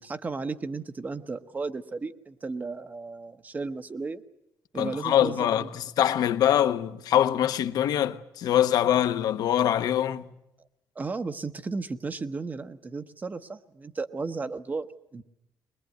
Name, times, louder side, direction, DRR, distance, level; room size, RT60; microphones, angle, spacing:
voice 1, 0.0-4.2 4.7-5.7 11.0-14.9 15.1-15.2, right 4 dB, 25° right, 0.9 m, -34 dB
voice 2, 4.7-10.3, left 11 dB, 75° left, 1.1 m, -24 dB
22.0 x 21.5 x 9.3 m
cardioid pair, 135°, 7 cm